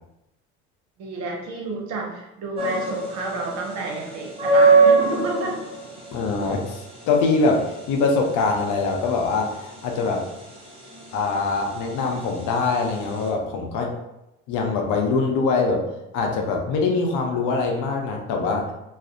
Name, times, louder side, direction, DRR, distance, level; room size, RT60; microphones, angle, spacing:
voice 1, 1.0-5.6, right 3 dB, 55° right, 0 dB, 0.7 m, -30 dB
sound 1, 2.5-13.3, right 3 dB, 15° right, 0.8 m, -23 dB
voice 2, 6.1-10.2 11.1-13.9 14.5-15.8 16.1-18.7, left 4 dB, 60° left, 2 dB, 0.6 m, -23 dB
2.4 x 2.0 x 2.6 m, 0.89 s
hypercardioid pair, 75°, 34 cm